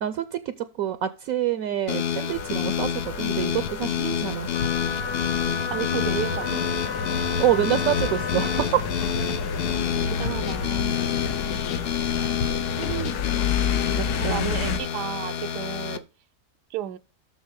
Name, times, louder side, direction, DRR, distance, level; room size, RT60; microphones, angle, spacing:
voice 1, 0.0-4.5 7.4-8.9 14.0-14.5, right 11 dB, 70° right, 1.0 m, -26 dB
sound 1, 1.9-16.0, left 8 dB, 60° left, 0.6 m, -28 dB
sound 2, 2.3-14.8, left 6 dB, 75° left, 1.3 m, -30 dB
Wind instrument woodwind instrument, 4.5-8.7, left 5 dB, 40° left, 1.1 m, -33 dB
voice 2, 5.7-6.6 9.5-11.0 12.8-13.3 14.2-16.0 16.7-17.0, right 12 dB, 85° right, 1.2 m, -33 dB
6.6 x 6.4 x 5.2 m
omnidirectional pair, 1.7 m